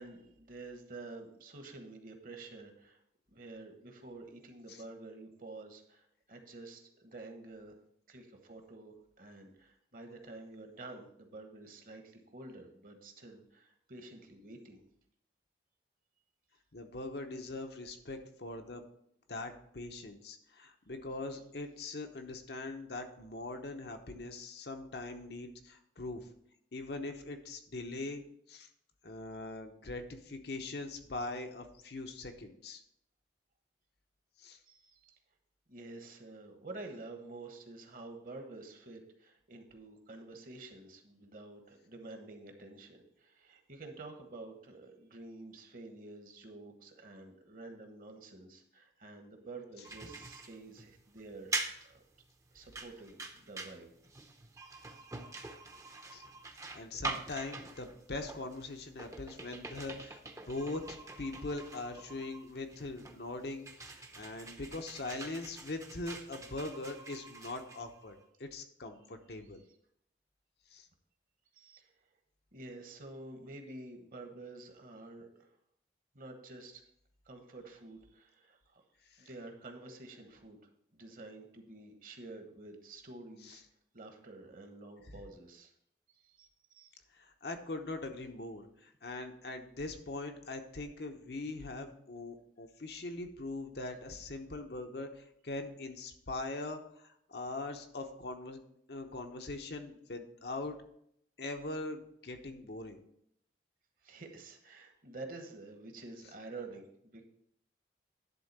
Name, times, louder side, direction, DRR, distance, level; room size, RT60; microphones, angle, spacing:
voice 1, 0.0-3.0 3.3-7.8 8.1-14.8 34.6-35.2 35.7-51.5 51.8-52.0 52.5-53.9 54.5-55.0 71.5-71.9 72.5-75.6 76.1-76.8 77.2-78.8 79.2-80.6 80.9-83.6 83.9-85.7 86.1-86.5 86.7-87.0 104.0-107.2, right 2 dB, 50° right, 5 dB, 1.2 m, -49 dB
voice 2, 16.7-18.8 19.3-26.3 26.7-28.2 28.5-28.7 29.0-32.8 34.4-34.6 56.1-56.2 56.7-69.6 70.7-70.9 79.1-79.3 83.4-83.6 87.1-98.6 98.9-100.8 101.4-103.0, left 2 dB, 60° left, 5 dB, 0.9 m, -42 dB
sound 1, 49.8-68.3, right 3 dB, 15° right, 0.7 m, -44 dB
11.0 x 3.8 x 6.7 m, 0.73 s
head